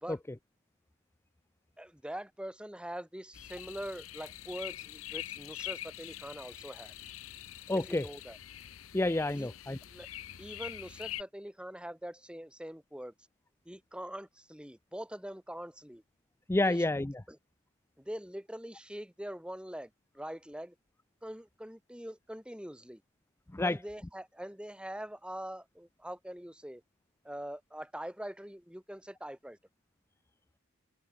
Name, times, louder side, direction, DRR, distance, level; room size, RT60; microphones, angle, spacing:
voice 1, 1.8-6.9 7.7-8.4 9.3-9.5 9.8-10.1 10.4-13.1 13.7-16.0 16.6-16.8 17.3-17.4 18.0-20.7 21.2-23.0 23.6-26.8 27.2-29.6, equal, 5° right, 2.5 m, -43 dB
sound 1, 3.3-11.2, left 13 dB, 70° left, 0.8 m, -44 dB
voice 2, 7.7-8.1 8.9-9.8 16.5-17.1 23.5-23.8, left 2 dB, 10° left, 0.5 m, -29 dB
head